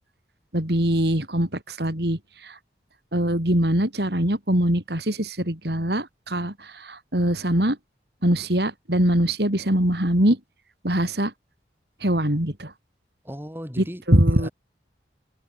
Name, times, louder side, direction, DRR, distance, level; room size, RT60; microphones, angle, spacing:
voice 1, 0.5-2.5 3.1-7.8 8.2-10.4 10.8-11.3 12.0-12.7 13.8-14.5, right 1 dB, 65° right, 4.8 m, -22 dB
voice 2, 13.2-14.0 14.3-14.5, equal, 10° right, 6.8 m, -36 dB
head